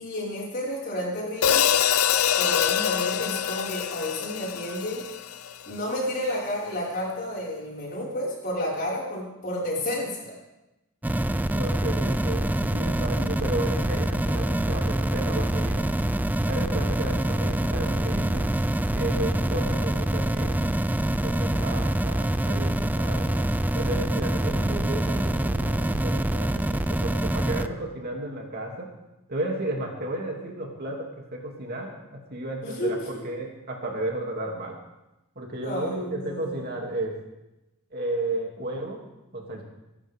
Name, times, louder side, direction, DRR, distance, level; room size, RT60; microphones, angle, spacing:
voice 1, 0.0-1.7 2.4-5.0 5.7-10.3 32.6-33.2 35.6-36.7, left 1 dB, 45° left, -6 dB, 6.0 m, -31 dB
Hi-hat, 1.4-5.7, left 9 dB, 80° left, 0.6 m, -24 dB
sound 1, 11.0-27.7, right 1 dB, 10° right, 0.4 m, -25 dB
voice 2, 11.5-15.9 16.4-18.5 18.9-20.7 21.2-23.5 23.7-28.9 29.3-31.9 32.3-34.8 35.3-37.1 37.9-39.0 39.3-39.6, right 2 dB, 45° right, 0 dB, 3.0 m, -33 dB
24.0 x 11.5 x 3.8 m, 0.97 s
head